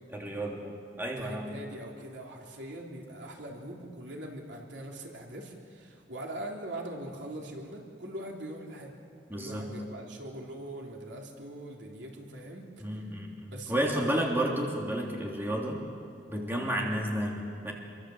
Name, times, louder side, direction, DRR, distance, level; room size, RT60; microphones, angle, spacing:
voice 1, 0.1-1.6 9.3-9.7 12.8-15.8 16.3-17.7, right 1 dB, 10° right, -1 dB, 3.3 m, -32 dB
voice 2, 1.2-8.9 9.3-12.7 13.5-14.1 14.4-14.6, right 1 dB, 70° right, 0 dB, 3.6 m, -42 dB
27.0 x 24.0 x 8.0 m, 2.4 s
head